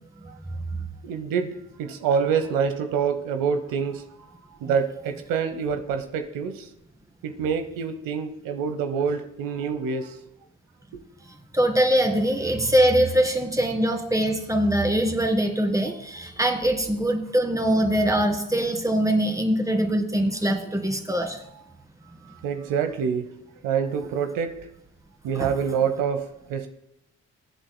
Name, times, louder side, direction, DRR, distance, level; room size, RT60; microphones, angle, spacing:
voice 1, 1.0-4.0 4.6-6.7 7.2-10.2 10.9-11.0 22.3-23.3 23.6-24.6 25.2-26.7, right 6 dB, 80° right, 8 dB, 0.9 m, -26 dB
voice 2, 11.5-21.4 25.3-25.5, right 1 dB, 10° right, 4 dB, 2.1 m, -22 dB
21.0 x 7.9 x 2.2 m, 0.82 s
supercardioid pair, 60°, 33 cm